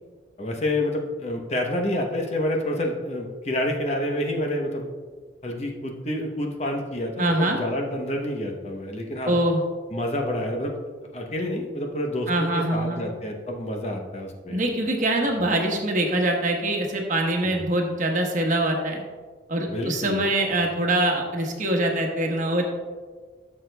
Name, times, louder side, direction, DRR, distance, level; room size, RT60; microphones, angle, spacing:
voice 1, 0.4-4.9 5.4-9.4 9.9-10.8 11.1-14.6 15.4-15.5 17.4-17.7 19.7-20.2, left 1 dB, 35° left, 2 dB, 0.8 m, -28 dB
voice 2, 7.2-7.6 9.2-9.6 12.3-13.0 14.5-19.0 19.5-22.6, right 1 dB, 45° right, 1 dB, 1.1 m, -24 dB
13.5 x 6.5 x 2.3 m, 1.5 s
head